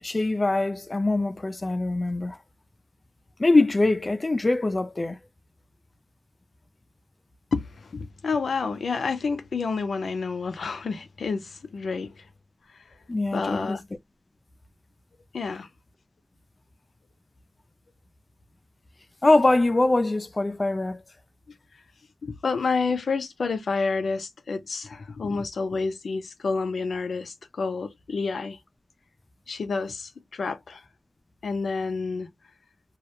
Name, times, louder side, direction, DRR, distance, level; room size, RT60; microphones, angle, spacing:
voice 1, 0.0-2.4 3.4-5.2 13.1-13.8 19.2-21.0, left 2 dB, 30° left, 0.4 m, -23 dB
voice 2, 7.9-12.1 13.3-13.8 15.3-15.7 22.2-28.6 29.5-30.8 31.4-32.3, left 4 dB, 80° left, 0.5 m, -29 dB
2.3 x 2.1 x 2.8 m
wide cardioid pair, 100°, 0 cm